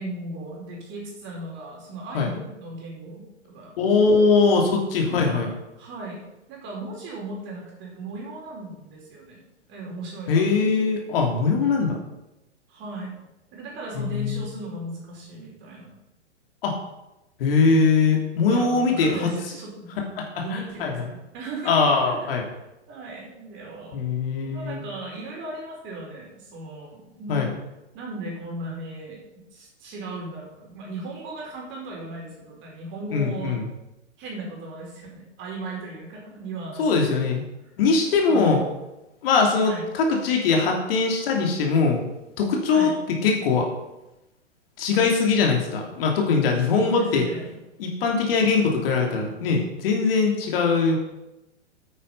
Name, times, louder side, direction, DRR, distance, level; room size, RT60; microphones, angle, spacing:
voice 1, 0.0-3.7 5.0-6.2 6.5-9.4 9.7-10.7 12.7-15.9 18.5-20.0 20.4-22.2 22.9-24.1 24.4-27.5 27.9-29.2 29.5-33.6 34.2-37.2 38.3-38.6 39.6-39.9 42.7-43.0 46.7-47.4, right 2 dB, 30° right, -2 dB, 4.7 m, -37 dB
voice 2, 3.8-5.5 10.3-12.0 13.9-14.4 16.6-16.7 17.4-19.3 20.2-21.1 21.6-22.4 23.9-24.8 27.3-27.5 33.1-33.7 36.8-37.4 37.8-38.6 39.2-42.0 42.4-42.9 43.2-43.7 44.8-47.3 47.8-51.0, left 4 dB, 50° left, 1 dB, 2.9 m, -21 dB
9.4 x 8.6 x 5.5 m, 0.93 s
hypercardioid pair, 115°, 36 cm